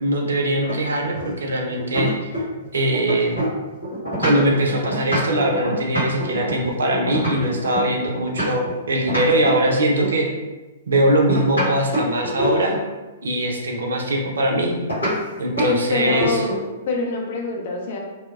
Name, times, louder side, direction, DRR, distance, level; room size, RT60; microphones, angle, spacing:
voice 1, 0.0-2.4 2.7-3.4 4.2-10.3 10.9-12.7 13.2-14.7 15.4-16.4, right 1 dB, 75° right, 1 dB, 0.4 m, -21 dB
sound 1, 0.7-2.6 2.9-8.7 9.1-10.2 11.1-12.9 14.9-15.2 15.6-15.7 16.0-16.7, equal, 90° left, 1.3 m, -25 dB
voice 2, 15.6-16.5 16.8-18.0, left 3 dB, 55° left, 0 dB, 0.5 m, -26 dB
2.9 x 2.1 x 2.3 m, 1.2 s
figure-of-eight pair, 115°, 0 cm